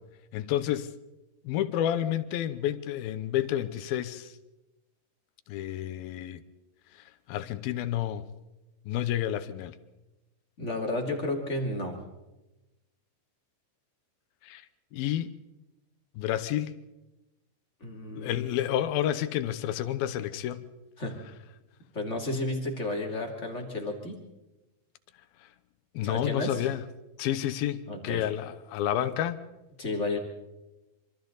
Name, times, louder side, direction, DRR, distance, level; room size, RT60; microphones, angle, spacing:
voice 1, 0.3-0.9 1.4-4.3 5.5-6.4 7.3-8.2 8.9-9.7 14.4-14.6 14.9-15.3 16.2-16.8 18.2-20.6 25.9-26.8 27.2-29.4, left 11 dB, 75° left, 2.5 m, -30 dB
voice 2, 10.6-12.0 17.8-18.5 21.0-21.1 21.9-24.2 26.0-26.7 27.9-28.2 29.8-30.2, left 2 dB, 20° left, 2.3 m, -32 dB
26.0 x 26.0 x 4.0 m
omnidirectional pair, 4.6 m